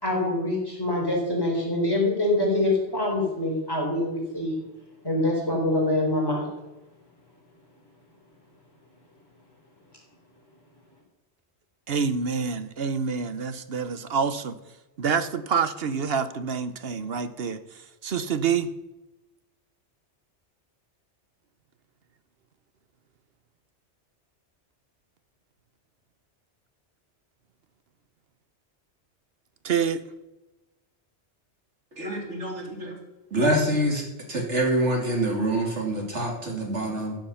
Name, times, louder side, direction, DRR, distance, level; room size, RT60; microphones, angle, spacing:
voice 1, 0.0-4.6 5.0-6.5, left 1 dB, 20° left, -2 dB, 4.5 m, -25 dB
voice 2, 11.9-14.6 15.0-17.6 18.0-18.7 29.6-30.0, right 6 dB, 60° right, 11 dB, 1.1 m, -27 dB
voice 3, 32.0-32.9 33.3-34.0 34.3-37.2, right 1 dB, 90° right, 0 dB, 3.3 m, -26 dB
15.0 x 9.2 x 5.7 m, 1.0 s
omnidirectional pair, 1.2 m